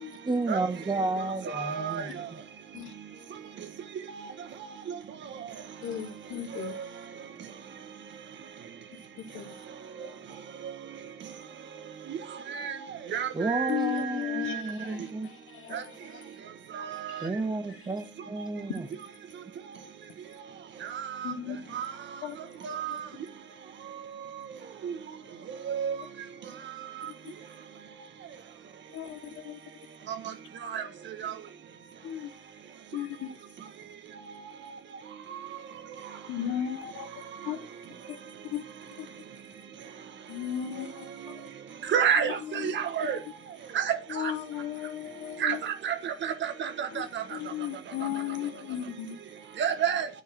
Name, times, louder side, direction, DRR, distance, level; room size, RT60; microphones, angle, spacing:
voice 1, 0.3-2.4 13.3-15.3 17.2-18.9, right 2 dB, 20° right, 1.7 m, -31 dB
voice 2, 1.5-2.0 12.5-12.8 13.1-13.7 14.4-14.6 15.7-15.8 16.8-17.3 20.9-21.3 21.7-21.9 22.6-22.9 24.8-24.9 25.7-26.0 30.7-30.8 31.2-31.3 41.9-43.2 43.7-44.0 45.4-47.2 49.6-50.1, right 8 dB, 65° right, 1.5 m, -29 dB
voice 3, 5.8-6.8 9.2-9.6 13.7-16.4 17.1-17.3 17.7-18.0 18.7-18.8 21.2-21.6 22.2-22.4 22.9-23.0 27.0-27.3 28.9-29.6 32.0-32.3 32.9-33.3 36.3-37.6 38.1-38.6 39.0-39.1 40.3-41.4 42.2-42.9 44.1-45.6 46.9-49.2, left 10 dB, 85° left, 0.9 m, -36 dB
9.8 x 4.7 x 5.9 m
cardioid pair, 90°, 20 cm